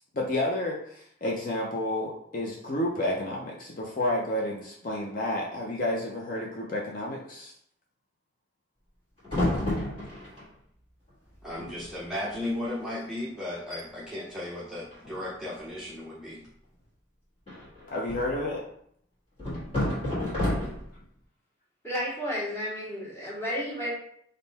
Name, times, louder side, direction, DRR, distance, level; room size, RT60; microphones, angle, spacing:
voice 1, 0.1-7.5 17.9-18.6, left 1 dB, 45° left, -3 dB, 0.6 m, -30 dB
sound 1, 9.2-10.4 11.3-11.4 11.6-11.9 12.3-12.5 13.0-13.1 13.5-13.8 14.9-15.5 17.5-18.4 19.4-21.0, left 1 dB, 30° left, 1.6 m, -30 dB
voice 2, 11.4-16.4, left 1 dB, 5° right, -8 dB, 0.6 m, -35 dB
voice 3, 21.8-23.9, equal, 15° left, -7 dB, 1.6 m, -32 dB
3.6 x 2.6 x 4.1 m, 0.68 s
head